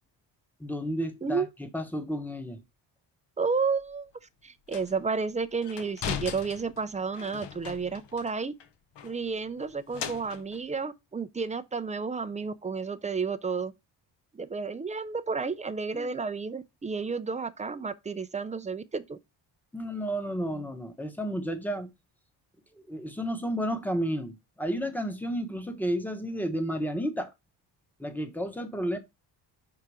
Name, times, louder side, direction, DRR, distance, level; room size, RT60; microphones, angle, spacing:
voice 1, 0.6-1.5 1.7-2.6 15.9-16.1 19.7-21.9 22.9-27.3 28.0-29.0, equal, 5° left, 0.9 m, -32 dB
voice 2, 3.4-4.1 4.4-8.5 9.0-13.7 14.3-19.2, right 5 dB, 20° right, 0.3 m, -31 dB
sound 1, 3.8-3.9 4.7-5.0 5.6-8.3 8.6-8.7 8.9-10.6, left 8 dB, 70° left, 0.8 m, -39 dB
5.7 x 3.9 x 4.7 m
wide cardioid pair, 155°, 44 cm